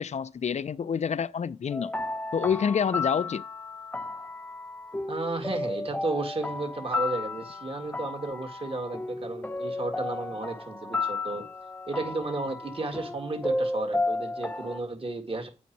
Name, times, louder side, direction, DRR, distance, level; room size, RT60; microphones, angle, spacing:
voice 1, 0.0-1.9 2.3-3.4, left 7 dB, 55° left, 0.4 m, -28 dB
sound 1, 1.7-14.8, left 2 dB, 10° left, 0.7 m, -33 dB
voice 2, 5.1-11.4 11.9-15.5, right 2 dB, 45° right, 2.1 m, -33 dB
8.5 x 5.1 x 4.6 m
cardioid pair, 40°, 14 cm